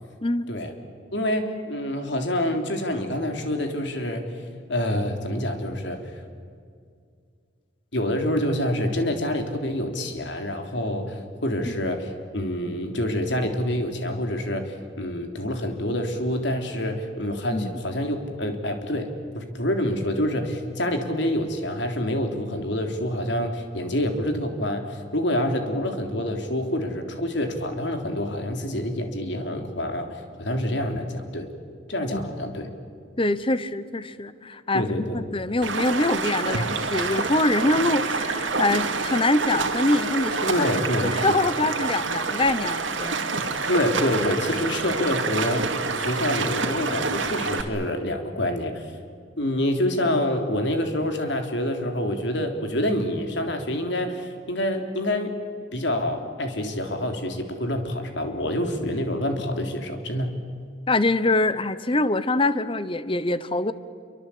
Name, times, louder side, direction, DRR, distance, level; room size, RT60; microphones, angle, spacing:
voice 1, 1.1-4.3 4.7-6.0 7.9-19.1 19.3-30.1 30.4-31.5 31.9-32.7 34.7-35.2 40.5-41.1 43.7-48.9 49.4-55.3 55.7-60.3, left 1 dB, 65° left, 5 dB, 3.4 m, -27 dB
voice 2, 33.2-34.9 35.1-40.7 41.1-43.2 60.9-63.7, left 2 dB, 25° left, 14 dB, 1.0 m, -24 dB
Stream, 35.6-47.6, right 4 dB, 75° right, 2.6 m, -27 dB
28.0 x 24.0 x 8.6 m, 2.2 s
head